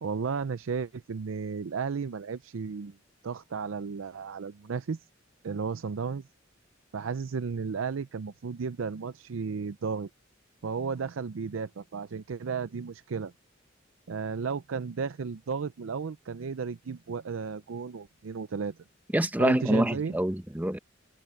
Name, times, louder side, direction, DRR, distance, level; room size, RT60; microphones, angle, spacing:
voice 1, 0.0-3.0 3.2-5.0 5.4-6.2 6.9-10.1 10.6-13.3 14.1-18.7 19.4-20.2, right 5 dB, 80° right, 0.5 m, -33 dB
voice 2, 19.1-20.8, right 1 dB, 10° right, 0.8 m, -26 dB
head